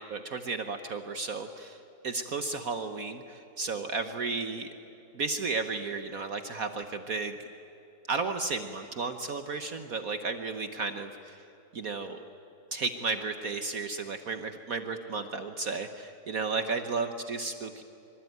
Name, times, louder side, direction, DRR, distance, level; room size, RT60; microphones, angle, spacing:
voice 1, 0.0-1.8 2.0-4.7 5.1-7.4 8.1-11.4 11.7-12.2 12.7-17.8, right 4 dB, 55° right, 8 dB, 1.4 m, -33 dB
25.5 x 25.0 x 9.4 m, 2.8 s
omnidirectional pair, 1.9 m